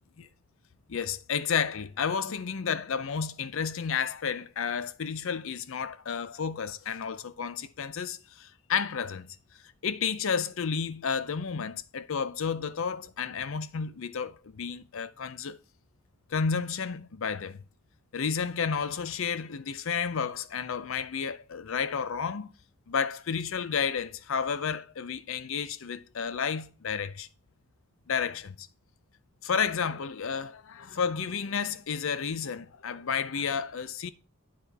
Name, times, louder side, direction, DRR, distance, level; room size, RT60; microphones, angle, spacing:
voice 1, 0.9-9.4 9.8-15.6 16.3-17.6 18.1-22.5 22.9-27.3 28.1-28.7 29.4-34.1, left 6 dB, 60° left, 0.5 m, -31 dB
10.0 x 4.3 x 4.1 m
head